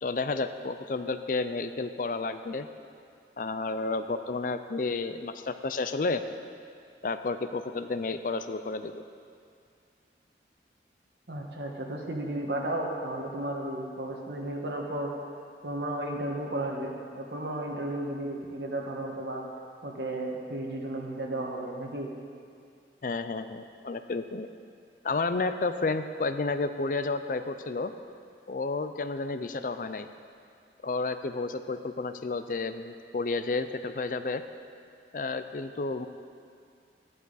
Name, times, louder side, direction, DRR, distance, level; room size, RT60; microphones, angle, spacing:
voice 1, 0.0-2.7 3.4-6.2 7.0-9.0 23.0-24.5 25.0-27.9 28.5-30.1 30.8-34.4 35.1-36.1, left 3 dB, 50° left, 10 dB, 0.5 m, -31 dB
voice 2, 11.3-15.1 15.6-19.4 19.8-22.1, right 1 dB, 75° right, 0 dB, 1.6 m, -34 dB
14.0 x 11.0 x 4.1 m, 2.3 s
head